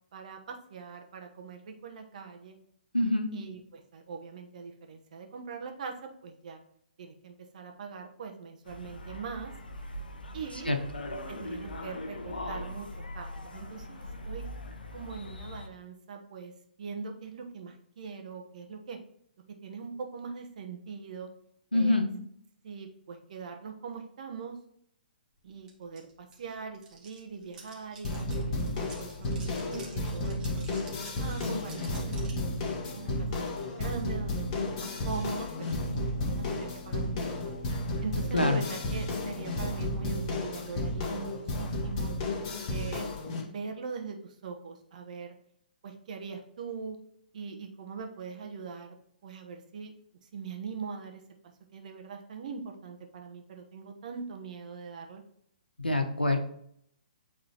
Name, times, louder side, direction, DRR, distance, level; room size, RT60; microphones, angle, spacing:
voice 1, 0.1-2.6 3.3-6.6 7.0-9.5 10.3-10.7 11.3-14.4 14.9-16.5 16.8-19.0 19.6-21.3 21.7-22.0 22.6-24.6 25.4-30.4 31.2-32.1 32.4-35.7 36.0-37.6 38.0-42.1 42.7-43.1 43.4-45.3 45.8-47.0 47.3-49.0 49.2-49.9 50.3-51.2 51.7-55.2, right 5 dB, 50° right, 4 dB, 1.1 m, -41 dB
voice 2, 2.9-3.3 10.7-10.8 21.7-22.1 38.3-38.6 55.8-56.4, left 2 dB, 90° left, 5 dB, 1.2 m, -25 dB
sound 1, 8.6-15.7, left 1 dB, 70° left, 0.8 m, -41 dB
sound 2, 25.7-25.8 26.0-32.4, right 3 dB, 15° right, 1.5 m, -50 dB
sound 3, 28.0-43.4, left 1 dB, 35° left, 1.9 m, -33 dB
9.1 x 3.7 x 2.9 m, 0.69 s
figure-of-eight pair, 125°, 5 cm